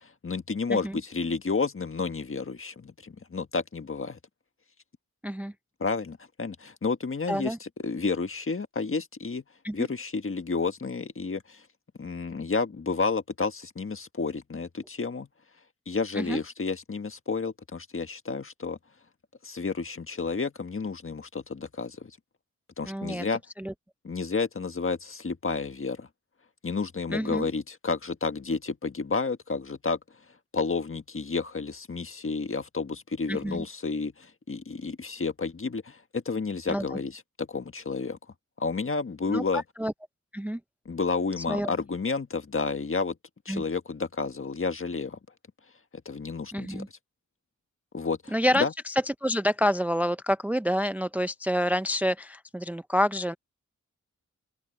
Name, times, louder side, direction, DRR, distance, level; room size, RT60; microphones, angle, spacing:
voice 1, 0.0-4.2 5.8-9.4 9.7-11.6 12.0-15.3 15.9-18.8 19.4-22.1 22.8-23.4 24.0-26.1 26.6-30.0 30.5-38.2 38.6-39.6 40.8-43.1 43.4-45.2 46.0-46.8 47.9-48.7, left 4 dB, 45° left, 1.6 m, -31 dB
voice 2, 22.8-23.3 23.6-23.7 27.1-27.5 33.3-33.7 36.7-37.0 39.3-39.9 40.3-40.6 41.4-41.7 43.5-43.6 46.5-46.9 48.3-53.4, equal, 5° right, 0.5 m, -28 dB
open air
wide cardioid pair, 70°, 30 cm